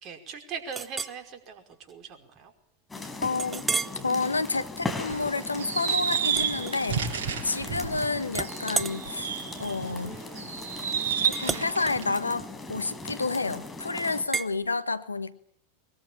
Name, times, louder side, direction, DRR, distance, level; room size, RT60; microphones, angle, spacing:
voice 1, 0.0-2.5, right 6 dB, 35° right, 6 dB, 5.2 m, -40 dB
Chink clink, 0.7-1.2 1.7-1.9 2.4-2.5 3.4-4.0 4.5-4.8 6.3-7.2 7.6-8.0 8.3-13.4 14.3-14.5, right 5 dB, 15° right, 1.0 m, -34 dB
sound 1, 2.9-14.2, left 2 dB, 10° left, 5.2 m, -39 dB
voice 2, 3.2-3.6 4.0-7.0 7.4-10.2 11.2-15.4, left 3 dB, 80° left, 13 dB, 1.4 m, -30 dB
sound 2, 5.1-9.9 10.3-12.1, right 7 dB, 55° right, 6.5 m, -31 dB
23.5 x 22.0 x 8.8 m, 0.63 s
figure-of-eight pair, 90°, 0 cm